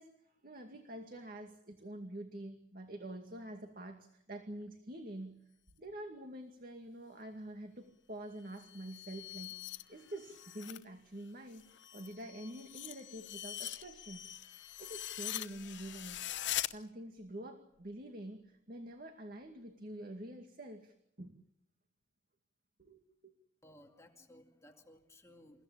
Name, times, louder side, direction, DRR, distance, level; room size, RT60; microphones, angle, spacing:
voice 1, 0.0-5.4 5.8-11.7 11.9-14.3 14.8-16.2 16.7-21.4 22.8-23.3, right 1 dB, 50° right, 5 dB, 2.3 m, -47 dB
sound 1, 8.4-10.8 11.2-16.7, left 13 dB, 75° left, 0.9 m, -43 dB
voice 2, 23.6-25.6, left 1 dB, 15° left, 2 dB, 2.3 m, -59 dB
28.5 x 16.5 x 8.8 m, 0.76 s
head